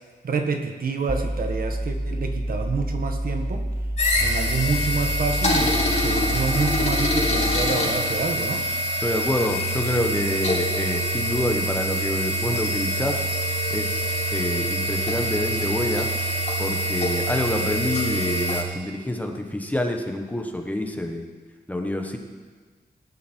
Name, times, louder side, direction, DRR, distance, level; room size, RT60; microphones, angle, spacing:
voice 1, 0.2-3.7 4.2-8.6, right 4 dB, 60° right, 5 dB, 1.5 m, -28 dB
sound 1, 1.1-7.9, right 1 dB, 10° right, 0.7 m, -28 dB
sound 2, 4.0-18.6, equal, 45° left, 4.1 m, -25 dB
voice 2, 9.0-13.2 13.7-16.1 16.6-21.3 21.7-22.2, left 1 dB, 10° left, 3 dB, 1.2 m, -27 dB
19.0 x 11.0 x 4.6 m, 1.5 s
wide cardioid pair, 145°, 17 cm